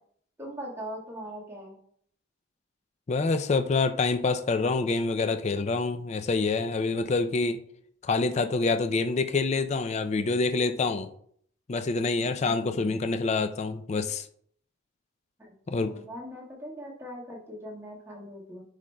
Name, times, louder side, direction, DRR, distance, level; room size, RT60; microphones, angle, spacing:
voice 1, 0.4-1.8 15.4-15.5 15.8-18.6, equal, 10° right, 1.5 m, -41 dB
voice 2, 3.1-7.6 8.0-11.1 11.7-14.3 15.7-16.0, left 3 dB, 35° left, 0.3 m, -26 dB
10.0 x 4.9 x 2.2 m
head